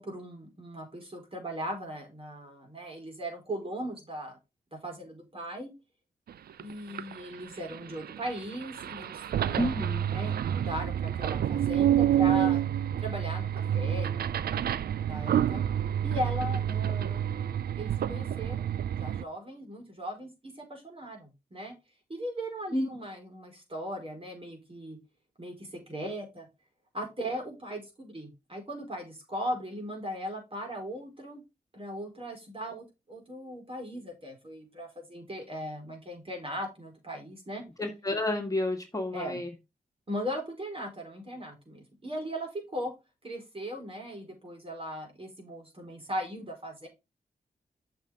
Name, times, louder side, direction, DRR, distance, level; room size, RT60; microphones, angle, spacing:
voice 1, 0.0-4.4 4.7-5.7 6.6-9.8 10.1-12.6 13.0-15.6 16.0-17.2 17.8-18.7 19.0-21.7 22.1-25.0 25.4-26.5 26.9-31.4 31.7-37.6 39.1-39.4 40.1-42.9 43.2-46.9, equal, 35° right, 2 dB, 4.6 m, -38 dB
sound 1, 6.3-6.4 6.6-19.2, right 10 dB, 75° right, 0.5 m, -28 dB
voice 2, 9.6-10.1 22.7-22.8 37.8-39.5, left 1 dB, 20° left, 2 dB, 2.0 m, -30 dB
7.2 x 6.7 x 3.6 m, 0.25 s
cardioid pair, 45°, 16 cm